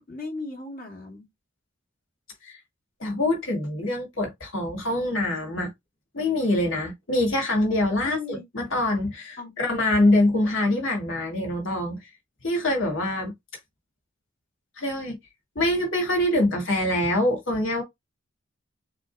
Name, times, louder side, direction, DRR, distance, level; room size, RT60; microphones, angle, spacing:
voice 1, 0.1-1.3 8.0-8.4 9.4-9.8, left 3 dB, 45° left, 2.3 m, -37 dB
voice 2, 3.0-5.7 6.1-12.0 12.4-13.3 14.8-15.2 15.6-17.8, left 1 dB, 80° left, 2.1 m, -24 dB
6.6 x 2.7 x 2.4 m
head